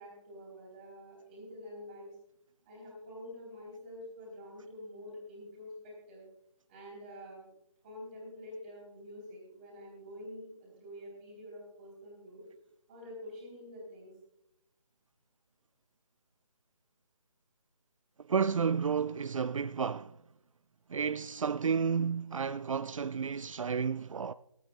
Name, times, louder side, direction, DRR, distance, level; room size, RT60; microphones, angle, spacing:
voice 1, 0.0-2.2 2.7-6.2 6.7-7.4 7.8-12.4 12.9-14.1, left 1 dB, 15° right, 3.8 m, -47 dB
voice 2, 18.2-20.2 20.9-24.3, right 6 dB, 70° right, 0.4 m, -31 dB
24.5 x 9.1 x 2.4 m
figure-of-eight pair, 170°, 18 cm